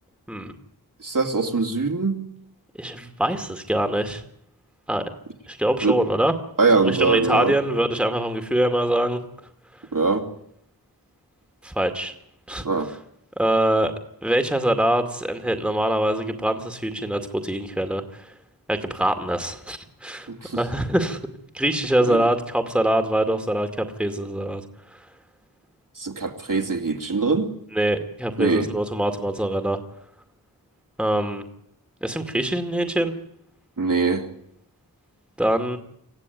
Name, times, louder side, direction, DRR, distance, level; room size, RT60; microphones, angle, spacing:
voice 1, 1.0-2.2 5.8-6.0 6.6-7.5 9.9-10.2 12.6-12.9 20.3-20.6 22.1-22.2 26.0-27.5 28.4-28.7 33.8-34.3, right 4 dB, 60° right, 3 dB, 2.7 m, -22 dB
voice 2, 2.8-4.2 4.9-5.0 5.5-6.3 6.8-9.2 11.6-12.1 12.5-12.6 13.4-13.9 14.2-18.3 18.7-20.3 20.5-21.2 21.5-24.6 24.9-25.0 27.7-29.8 31.0-31.4 32.0-33.1 35.4-35.8, right 1 dB, 5° right, 7 dB, 2.2 m, -24 dB
26.0 x 15.0 x 9.4 m, 0.75 s
wide cardioid pair, 65°, 36 cm